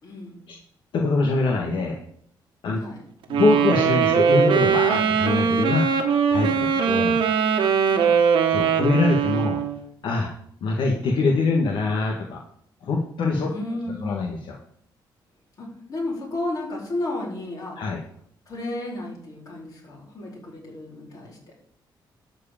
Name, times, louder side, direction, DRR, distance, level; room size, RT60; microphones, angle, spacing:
voice 1, 0.0-0.4 2.7-3.0 6.6-6.9 7.9-8.2 13.5-14.2 15.6-17.8 18.5-21.5, left 2 dB, 45° left, -3 dB, 4.2 m, -33 dB
voice 2, 0.9-2.0 2.6-2.8 3.3-5.9 6.3-7.2 8.5-9.6 10.0-10.3 10.6-12.4 12.8-13.5 14.0-14.6 17.8-18.0, left 3 dB, 75° left, 0 dB, 1.6 m, -23 dB
Wind instrument woodwind instrument, 3.3-9.8, right 7 dB, 85° right, 1.3 m, -21 dB
12.0 x 4.9 x 7.4 m, 0.65 s
cardioid pair, 135°, 8 cm